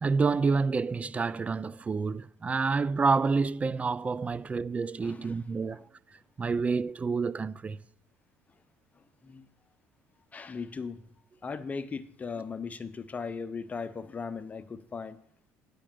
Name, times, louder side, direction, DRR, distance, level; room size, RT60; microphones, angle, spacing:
voice 1, 0.0-5.8 6.4-7.8, right 4 dB, 25° right, 0.4 m, -28 dB
voice 2, 5.0-5.4 5.7-5.8 9.0-9.5 10.3-11.1 11.4-15.2, left 5 dB, 25° left, 0.7 m, -38 dB
8.6 x 5.2 x 7.7 m
supercardioid pair, 90°, 6 cm